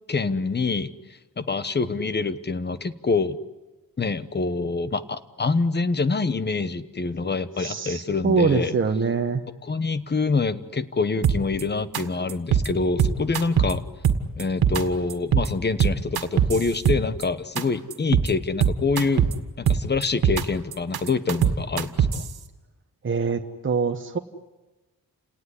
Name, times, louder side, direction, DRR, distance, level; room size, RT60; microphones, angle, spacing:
voice 1, 0.1-0.9 1.4-3.4 4.0-8.8 9.6-13.8 14.4-19.3 19.6-22.3, left 4 dB, 30° left, 13 dB, 1.1 m, -26 dB
voice 2, 7.6-9.4 23.0-24.2, right 5 dB, 35° right, 3 dB, 1.2 m, -24 dB
sound 1, 11.2-11.6 11.9-12.0 12.3-12.7 13.0-13.7 14.0-14.8 15.1-15.5 15.8-17.2 17.6-17.7 17.9-18.3 18.6-19.3 19.7-20.4 20.7-22.3, right 8 dB, 90° right, 1.9 m, -21 dB
29.5 x 18.5 x 9.8 m, 1.2 s
wide cardioid pair, 150°, 36 cm